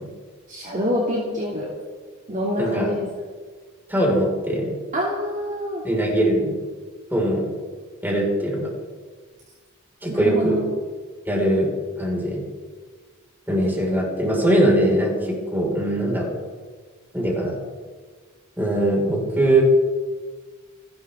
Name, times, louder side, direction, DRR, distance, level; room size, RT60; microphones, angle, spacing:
voice 1, 0.5-1.7 2.3-3.1 4.9-5.8 10.1-10.6, left 1 dB, 35° right, -3 dB, 2.7 m, -26 dB
voice 2, 2.6-2.9 3.9-4.8 5.8-6.6 7.1-7.4 8.0-8.7 10.0-10.6 11.3-11.7 12.0-12.4 13.5-16.3 17.1-17.6 18.6-19.6, right 1 dB, 10° right, -2 dB, 5.3 m, -21 dB
29.5 x 12.5 x 3.7 m, 1.5 s
head